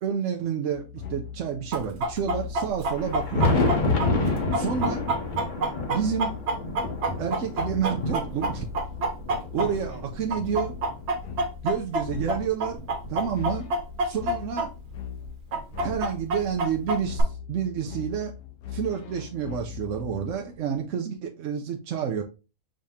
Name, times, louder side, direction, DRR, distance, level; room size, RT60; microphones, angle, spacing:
voice 1, 0.0-3.6 4.5-5.1 5.9-6.4 7.2-8.8 9.5-10.7 11.6-13.7 14.0-14.7 15.8-18.3 18.7-22.2, right 8 dB, 65° right, 2 dB, 0.9 m, -29 dB
sound 1, 0.7-20.6, left 9 dB, 70° left, 1.2 m, -40 dB
Chicken rooster, 1.7-10.0 10.3-14.7 14.9-15.0 15.5-17.2, right 2 dB, 85° right, 1.5 m, -27 dB
Thunder, 2.8-11.4 12.0-13.8 14.9-15.0 15.6-15.7 17.5-17.6 19.0-19.1 20.7-20.8, left 3 dB, 35° left, 0.9 m, -29 dB
5.2 x 2.8 x 3.5 m, 0.30 s
omnidirectional pair, 1.7 m